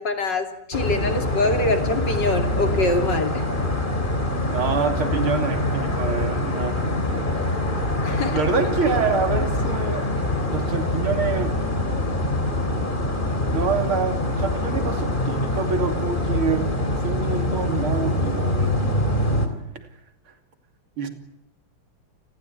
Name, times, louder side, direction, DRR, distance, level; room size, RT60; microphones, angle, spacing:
voice 1, 0.0-3.4 8.0-8.4, left 2 dB, 55° left, 6 dB, 3.5 m, -24 dB
sound 1, 0.7-19.5, left 1 dB, 20° left, 3.5 m, -24 dB
voice 2, 4.5-7.2 7.8-7.9 8.3-10.1 10.4-11.6 13.5-16.7 17.0-18.7 21.0-21.1, right 5 dB, 80° right, 6 dB, 3.7 m, -26 dB
29.5 x 19.5 x 9.6 m, 0.81 s
omnidirectional pair, 2.3 m